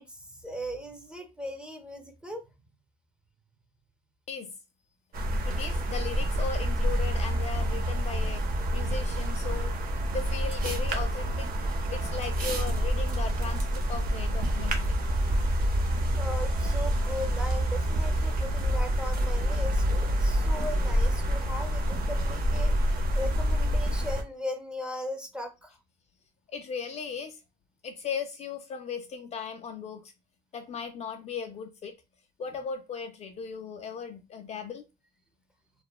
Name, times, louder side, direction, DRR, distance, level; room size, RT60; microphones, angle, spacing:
voice 1, 0.0-2.4 16.2-25.8, left 1 dB, 5° right, 0.6 m, -38 dB
sound 1, 5.1-24.2, equal, 55° right, 0.7 m, -27 dB
voice 2, 5.4-8.4 8.7-9.8 10.1-11.5 11.9-14.9 26.5-27.4 27.8-30.1 30.5-31.9 32.4-34.8, left 6 dB, 40° left, 0.4 m, -37 dB
2.9 x 2.0 x 2.3 m
cardioid pair, 110°, 17 cm